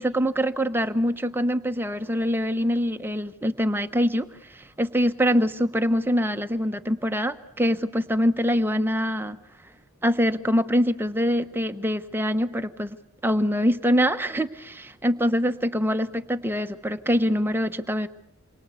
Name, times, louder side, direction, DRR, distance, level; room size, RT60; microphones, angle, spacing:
voice 1, 0.0-9.4 10.0-13.0 13.2-18.1, equal, 10° right, 8 dB, 1.1 m, -24 dB
28.0 x 23.5 x 8.2 m, 0.68 s
head